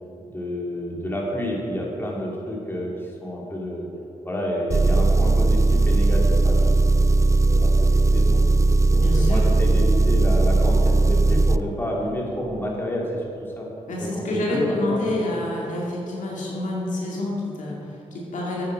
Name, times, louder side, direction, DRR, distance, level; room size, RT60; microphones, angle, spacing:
voice 1, 0.3-3.9 4.2-6.8 7.5-8.4 8.9-13.7 14.0-14.2 14.5-15.2, equal, 15° left, -3 dB, 2.7 m, -29 dB
Engine, 4.7-11.6, right 2 dB, 25° right, 0.3 m, -18 dB
voice 2, 8.9-9.4 13.9-18.6, left 1 dB, 75° left, -4 dB, 2.2 m, -28 dB
9.4 x 8.9 x 4.7 m, 2.6 s
supercardioid pair, 50°, 13 cm